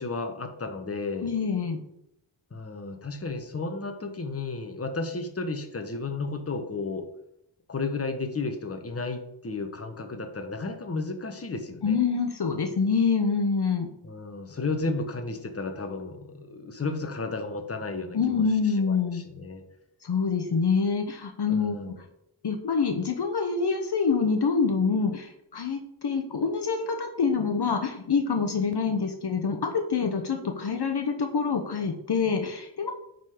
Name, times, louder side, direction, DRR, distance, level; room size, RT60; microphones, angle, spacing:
voice 1, 0.0-1.3 2.5-7.1 7.7-12.0 14.0-18.4 18.8-19.6 21.5-21.9, left 3 dB, 30° left, 6 dB, 1.1 m, -33 dB
voice 2, 1.2-1.8 11.8-13.9 18.1-19.2 20.0-21.9 22.4-32.9, left 5 dB, 55° left, 4 dB, 1.0 m, -26 dB
8.9 x 4.0 x 5.0 m, 0.79 s
wide cardioid pair, 85°, 47 cm